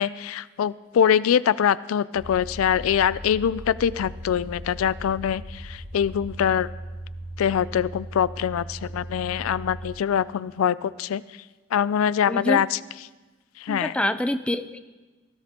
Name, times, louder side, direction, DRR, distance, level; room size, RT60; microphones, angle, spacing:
voice 1, 0.0-6.7 7.4-11.2 11.7-12.8 13.6-13.9, left 8 dB, 80° left, 18 dB, 0.3 m, -23 dB
sound 1, 2.1-9.9, equal, 65° right, 5.0 m, -38 dB
voice 2, 12.2-12.6 13.7-14.8, left 1 dB, 5° left, 11 dB, 0.4 m, -26 dB
18.0 x 16.0 x 2.9 m, 1.2 s
head